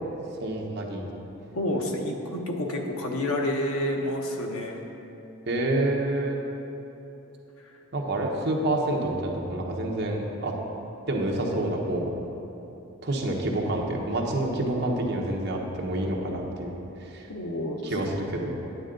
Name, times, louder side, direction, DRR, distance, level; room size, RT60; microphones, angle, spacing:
voice 1, 0.4-1.1 5.5-6.4 7.9-10.5 11.1-12.1 13.0-16.7 17.0-17.3 17.8-18.6, right 1 dB, 50° right, -1 dB, 1.1 m, -28 dB
voice 2, 1.5-4.8 7.6-7.7 17.3-18.2, left 1 dB, 80° left, 1 dB, 1.0 m, -29 dB
9.4 x 9.2 x 3.8 m, 3.0 s
head